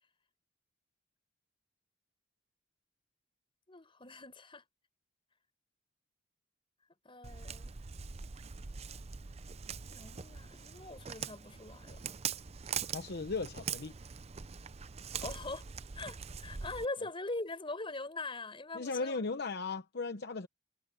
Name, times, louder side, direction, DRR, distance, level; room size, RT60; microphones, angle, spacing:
voice 1, 3.7-4.6 7.0-7.7 9.9-12.1 15.2-15.7 15.9-19.2, left 2 dB, 30° left, 4.9 m, -42 dB
Walk footsteps, 7.2-16.8, right 7 dB, 35° right, 0.6 m, -42 dB
voice 2, 12.9-13.9 18.7-20.5, left 4 dB, 60° left, 0.9 m, -37 dB
head